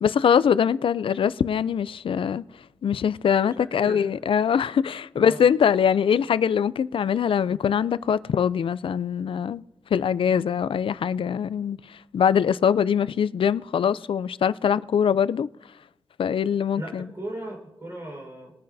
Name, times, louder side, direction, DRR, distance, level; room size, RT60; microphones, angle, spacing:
voice 1, 0.0-2.4 2.8-9.6 9.9-15.5 16.2-17.1, left 8 dB, 80° left, 0.4 m, -23 dB
voice 2, 3.5-4.0 5.1-5.5 16.7-18.5, right 1 dB, 35° right, 4.5 m, -37 dB
22.0 x 9.3 x 2.7 m
wide cardioid pair, 150°, 9 cm